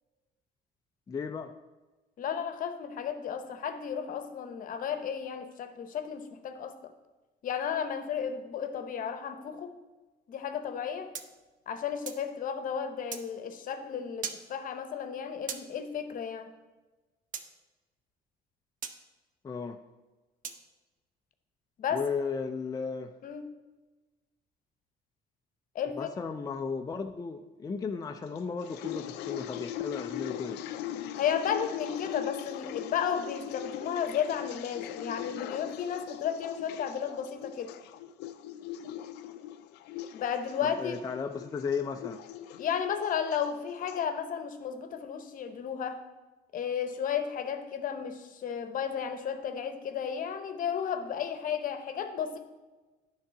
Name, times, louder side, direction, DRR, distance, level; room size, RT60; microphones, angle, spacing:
voice 1, 1.1-1.5 19.4-19.8 21.9-23.1 25.9-30.6 40.6-42.2, left 5 dB, 20° left, 5 dB, 0.4 m, -35 dB
voice 2, 2.2-6.8 7.4-9.7 10.3-11.1 11.7-16.5 21.8-22.1 23.2-23.4 25.7-26.1 31.2-37.7 40.1-41.0 42.6-46.0 46.5-52.4, left 8 dB, 55° left, 9 dB, 0.8 m, -33 dB
sound 1, 11.1-12.3 13.1-13.3 14.2-14.4 15.5-15.7 17.3-17.5 18.8-19.0 20.4-20.6, right 7 dB, 50° right, 0.7 m, -38 dB
sound 2, 28.4-44.1, left 11 dB, 80° left, 0.4 m, -40 dB
9.9 x 3.8 x 5.7 m, 1.2 s
cardioid pair, 110°, 17 cm